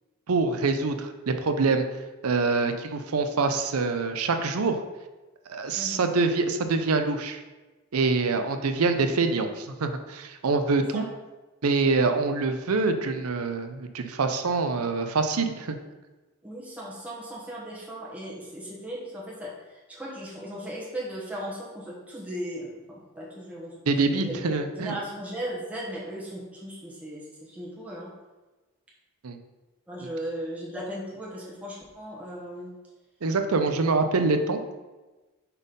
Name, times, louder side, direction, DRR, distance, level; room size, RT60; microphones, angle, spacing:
voice 1, 0.3-1.9 2.2-4.8 5.5-7.4 7.9-11.0 11.6-15.8 23.9-24.9 29.2-29.4 33.2-34.6, right 3 dB, 85° right, 7 dB, 0.6 m, -25 dB
voice 2, 16.4-23.8 24.1-28.1 29.9-32.7, equal, 5° right, -6 dB, 1.2 m, -37 dB
5.6 x 4.2 x 5.2 m, 1.2 s
head